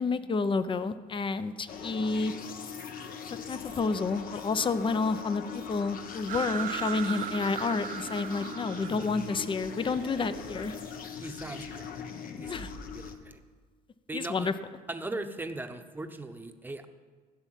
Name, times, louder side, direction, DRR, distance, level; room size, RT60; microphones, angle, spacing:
voice 1, 0.0-2.3 3.3-10.8 12.5-12.7 14.1-14.5, left 4 dB, 30° left, 13 dB, 0.7 m, -30 dB
sound 1, 1.7-13.1, left 6 dB, 55° left, 1.3 m, -41 dB
sound 2, 6.3-10.8, right 12 dB, 55° right, 0.4 m, -38 dB
voice 2, 11.2-11.9 12.4-12.7 12.9-13.4 14.1-14.5 14.9-16.9, right 2 dB, 10° right, 7 dB, 1.0 m, -39 dB
15.0 x 7.0 x 9.1 m, 1.5 s
cardioid pair, 110°, 17 cm